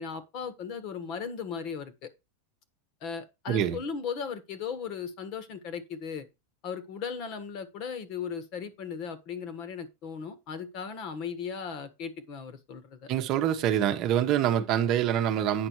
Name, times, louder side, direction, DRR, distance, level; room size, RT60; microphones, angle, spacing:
voice 1, 0.0-2.1 3.0-6.3 6.6-13.1, left 6 dB, 40° left, 1.5 m, -37 dB
voice 2, 3.5-3.8 13.1-15.7, right 10 dB, 35° right, 1.0 m, -25 dB
8.9 x 6.1 x 4.6 m
supercardioid pair, 165°, 0 cm